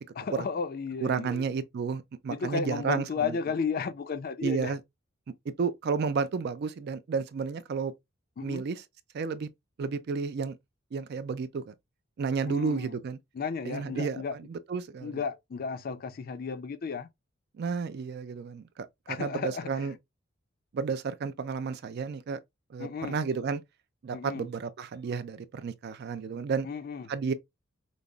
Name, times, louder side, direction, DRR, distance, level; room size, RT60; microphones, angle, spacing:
voice 1, 0.2-1.4 2.3-4.8 8.4-8.6 12.5-13.0 13.3-14.4 15.0-17.1 19.1-19.9 22.8-23.2 24.1-24.5 26.6-27.1, left 5 dB, 45° left, 0.4 m, -34 dB
voice 2, 1.0-3.3 4.4-4.8 5.5-7.9 8.4-8.8 9.1-9.5 9.8-10.6 10.9-11.7 12.2-13.2 13.7-14.2 14.5-15.2 17.6-18.9 19.2-19.9 20.7-22.4 22.7-23.6 24.0-26.7 27.1-27.3, right 5 dB, 50° right, 0.3 m, -32 dB
5.2 x 2.0 x 2.3 m
head